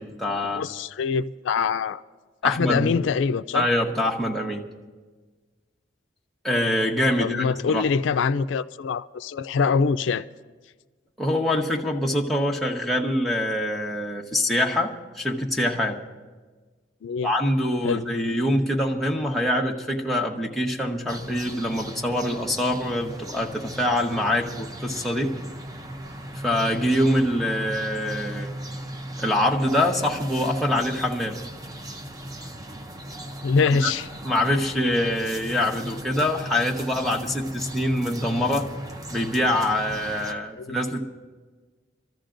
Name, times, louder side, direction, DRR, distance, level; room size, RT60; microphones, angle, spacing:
voice 1, 0.0-0.7 2.4-2.9 3.5-4.7 6.4-7.9 11.2-16.0 17.2-25.3 26.4-28.5 29.2-31.4 33.8-33.9 34.2-38.7 39.1-41.0, left 1 dB, ahead, 1.0 m, -24 dB
voice 2, 0.5-2.0 2.4-3.7 7.2-10.2 17.0-17.3 17.8-18.0 33.4-34.1 40.6-40.8, left 5 dB, 80° left, 0.4 m, -24 dB
sound 1, 21.1-40.3, right 1 dB, 20° right, 0.6 m, -37 dB
27.5 x 14.0 x 2.6 m
head